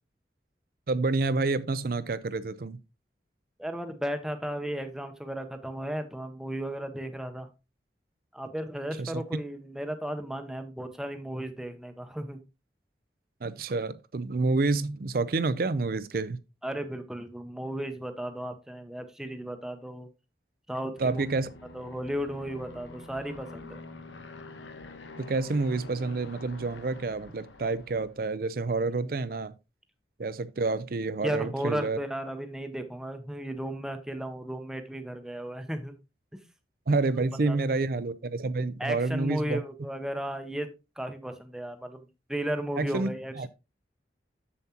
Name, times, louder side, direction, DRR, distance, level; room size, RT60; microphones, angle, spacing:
voice 1, 0.9-2.8 9.0-9.2 13.4-16.4 21.0-21.5 25.2-29.5 30.2-32.0 36.9-39.6 42.8-43.5, right 3 dB, 55° right, 0.5 m, -28 dB
voice 2, 3.6-7.5 8.3-12.4 16.6-20.1 20.7-21.2 21.7-23.8 29.0-29.1 31.2-35.9 37.5-37.8 38.8-40.7 41.0-43.5, equal, 5° right, 0.8 m, -35 dB
Aircraft, 21.0-28.3, left 2 dB, 90° left, 1.0 m, -46 dB
7.1 x 7.0 x 2.8 m
head